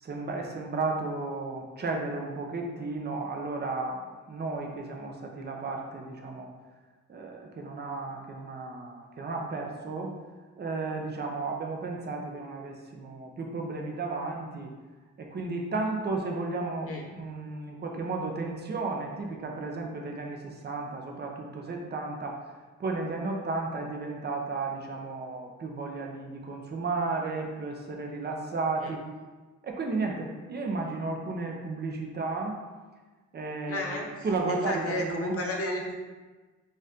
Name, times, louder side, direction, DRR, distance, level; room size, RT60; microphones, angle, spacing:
voice 1, 0.0-4.0 4.3-6.5 7.1-10.2 10.6-14.7 15.2-22.4 22.8-29.0 29.6-32.6 33.3-35.4, right 3 dB, 35° right, 1 dB, 0.7 m, -33 dB
voice 2, 33.7-34.1 34.5-36.0, left 1 dB, 50° left, 1 dB, 0.8 m, -32 dB
4.0 x 2.6 x 3.6 m, 1.3 s
cardioid pair, 90°, 30 cm